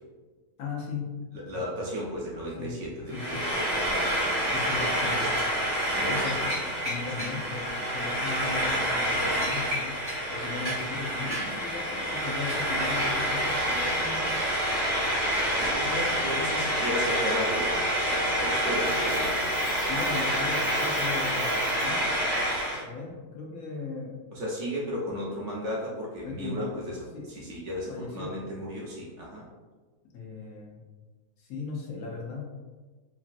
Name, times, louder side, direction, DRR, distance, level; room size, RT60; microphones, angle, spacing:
voice 1, 0.6-1.1 1.5-1.6 2.6-2.8 3.1-3.4 4.5-5.3 5.9-6.4 6.8-10.0 10.3-14.3 19.9-22.0 22.8-24.1 26.2-26.7 27.1-27.3 27.9-28.4 30.1-30.8 31.4-32.5, left 4 dB, 70° left, -2 dB, 1.1 m, -37 dB
voice 2, 1.3-4.8 5.2-5.5 5.9-6.6 15.6-19.5 24.3-29.5, equal, 65° right, -4 dB, 0.8 m, -35 dB
Frying (food), 3.1-22.8, equal, 20° right, 0.7 m, -28 dB
Coin (dropping), 18.5-22.0, equal, 20° left, 0.9 m, -47 dB
3.0 x 2.6 x 2.5 m, 1.3 s
omnidirectional pair, 1.6 m